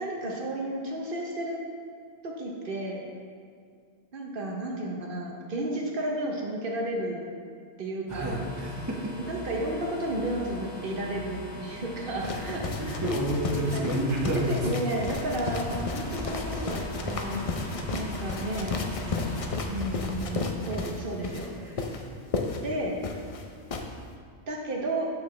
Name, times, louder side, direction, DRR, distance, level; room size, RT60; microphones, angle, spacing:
voice 1, 0.0-1.6 2.2-3.1 4.1-7.3 7.8-8.4 9.3-13.0 13.7-13.8 14.3-17.5 17.9-18.8 19.7-21.8 22.6-23.0 24.5-25.1, right 1 dB, 55° right, -1 dB, 0.9 m, -32 dB
sound 1, 8.1-19.5, equal, 80° left, 2.0 m, -41 dB
voice 2, 8.1-9.1 12.2-12.5 12.8-14.6, right 1 dB, 20° right, -2 dB, 0.6 m, -29 dB
sound 2, 12.2-23.9, left 3 dB, 50° left, 0.4 m, -33 dB
sound 3, 15.0-20.3, equal, 25° left, 1.8 m, -41 dB
7.2 x 6.2 x 3.2 m, 2.2 s
omnidirectional pair, 1.2 m